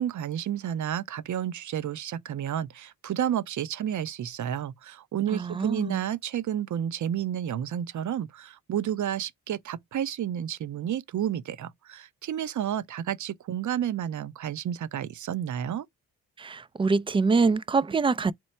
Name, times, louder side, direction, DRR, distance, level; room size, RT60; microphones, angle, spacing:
voice 1, 0.0-15.9, right 10 dB, 50° right, 0.6 m, -31 dB
voice 2, 5.3-6.0 16.4-18.3, right 4 dB, 15° right, 0.3 m, -25 dB
4.5 x 2.0 x 4.3 m
supercardioid pair, 50°, 38 cm